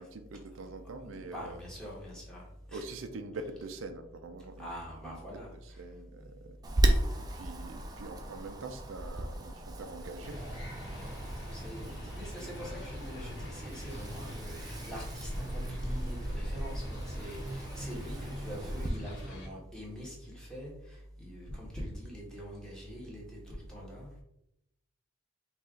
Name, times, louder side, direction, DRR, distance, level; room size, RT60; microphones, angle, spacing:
voice 1, 0.0-1.6 2.7-5.2 5.5-6.6 7.3-10.6, right 3 dB, 80° right, 7 dB, 0.5 m, -44 dB
voice 2, 1.0-2.8 4.6-5.8 10.9-11.1 11.5-24.2, equal, 5° left, -5 dB, 1.4 m, -44 dB
Wind, 6.6-18.9, right 1 dB, 20° right, 0.5 m, -35 dB
sound 1, 10.2-19.5, equal, 60° left, 1.1 m, -43 dB
5.5 x 2.4 x 3.7 m, 0.81 s
head